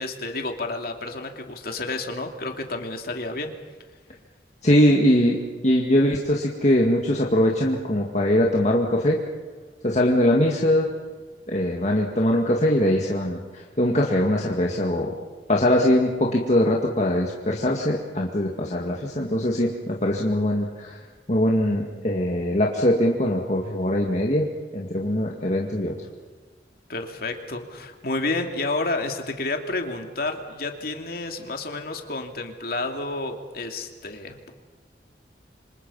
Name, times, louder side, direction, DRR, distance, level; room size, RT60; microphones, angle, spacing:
voice 1, 0.0-3.5 26.9-34.5, left 2 dB, 55° left, 4 dB, 2.7 m, -30 dB
voice 2, 4.6-9.2 9.8-10.9 11.5-15.1 15.5-21.0 21.3-24.5 24.7-25.9, left 1 dB, 40° left, -1 dB, 2.1 m, -22 dB
28.0 x 26.0 x 5.6 m, 1.4 s
head